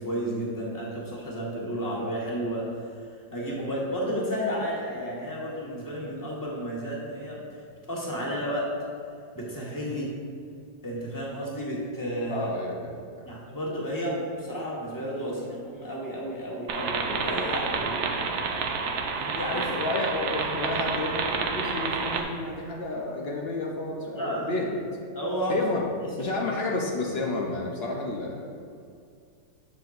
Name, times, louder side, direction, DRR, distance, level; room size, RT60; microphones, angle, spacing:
voice 1, 0.0-2.7 3.3-7.4 7.9-8.7 9.3-10.1 10.8-12.5 13.3-18.4 19.1-19.7 24.2-24.5 25.1-25.6, equal, 15° left, -4 dB, 1.0 m, -32 dB
voice 2, 12.3-13.3 19.5-24.8 25.5-25.9 26.2-28.5, left 2 dB, 90° left, -1 dB, 0.5 m, -31 dB
sound 1, 16.7-22.2, right 4 dB, 85° right, 0.6 m, -29 dB
7.7 x 7.6 x 2.5 m, 2.3 s
omnidirectional pair, 2.0 m